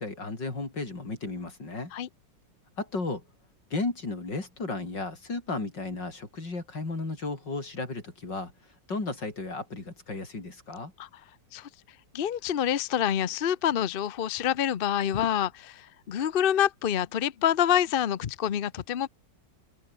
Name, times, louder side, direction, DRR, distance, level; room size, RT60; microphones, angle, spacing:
voice 1, 0.0-1.9 2.8-3.2 3.7-8.5 8.9-10.9, left 3 dB, 85° left, 5.8 m, -34 dB
voice 2, 12.1-19.1, left 10 dB, 50° left, 0.7 m, -27 dB
omnidirectional pair, 1.9 m